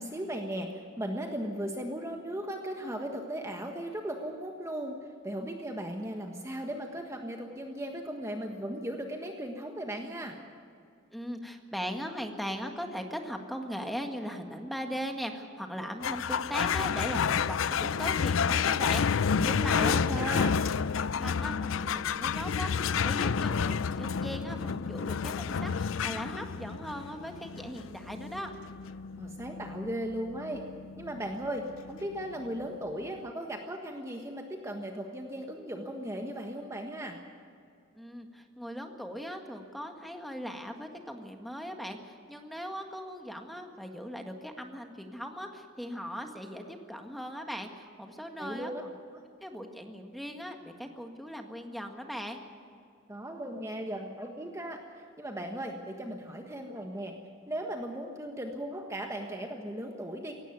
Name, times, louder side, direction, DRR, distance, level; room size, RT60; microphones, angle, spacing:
voice 1, 0.0-5.0 5.2-10.4 19.7-20.5 29.2-30.6 31.0-37.2 48.4-48.8 49.1-49.2 53.1-54.8 55.2-57.1 57.5-60.3, right 1 dB, 15° right, 3 dB, 1.4 m, -37 dB
voice 2, 11.1-20.2 21.1-28.5 37.9-48.9 49.4-52.4, equal, ahead, 4 dB, 1.7 m, -39 dB
sound 1, 16.0-32.8, left 6 dB, 80° left, 0.5 m, -30 dB
17.5 x 17.0 x 9.4 m, 2.4 s
head